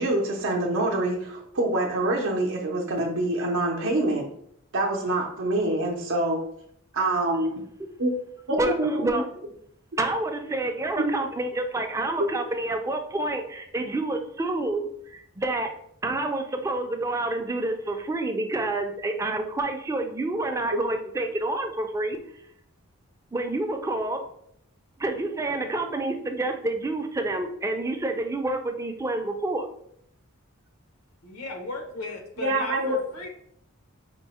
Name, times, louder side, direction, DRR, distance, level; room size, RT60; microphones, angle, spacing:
voice 1, 0.0-4.3 4.7-6.4 6.9-7.5 8.0-8.1 8.5-9.0 11.0-11.1 20.7-20.8 32.4-33.0, right 2 dB, 60° right, -1 dB, 0.6 m, -25 dB
voice 2, 8.6-9.4 10.0-15.7 16.0-22.2 23.3-24.2 25.0-29.7, right 2 dB, 15° right, 5 dB, 0.4 m, -28 dB
voice 3, 31.2-33.3, left 2 dB, 90° left, 3 dB, 0.8 m, -36 dB
4.4 x 2.0 x 4.1 m, 0.70 s
head